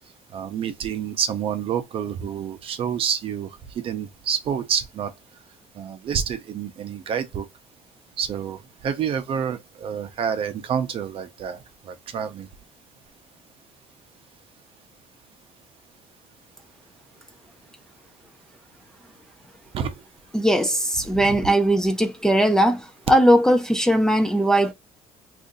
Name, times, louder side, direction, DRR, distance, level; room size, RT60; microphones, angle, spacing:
voice 1, 0.3-3.5 3.8-5.1 5.8-7.5 8.2-12.5 19.7-19.9 21.1-21.4, right 8 dB, 50° right, 0.6 m, -28 dB
voice 2, 20.3-24.7, equal, 5° left, 0.4 m, -19 dB
2.6 x 2.5 x 3.8 m
cardioid pair, 130°, 12 cm